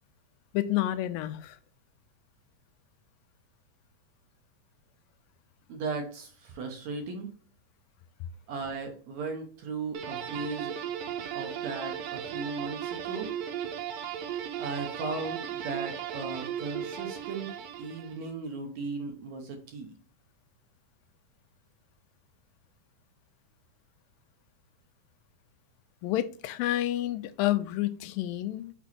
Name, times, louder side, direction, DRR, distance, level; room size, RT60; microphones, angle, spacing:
voice 1, 0.5-1.6 26.0-28.7, left 14 dB, 90° left, 2.3 m, -29 dB
voice 2, 5.7-7.3 8.5-10.8 11.3-13.3 14.6-17.5 17.8-19.9, right 4 dB, 65° right, 2.0 m, -36 dB
sound 1, 9.9-18.3, right 9 dB, 80° right, 2.6 m, -36 dB
6.0 x 4.5 x 4.2 m
omnidirectional pair, 4.0 m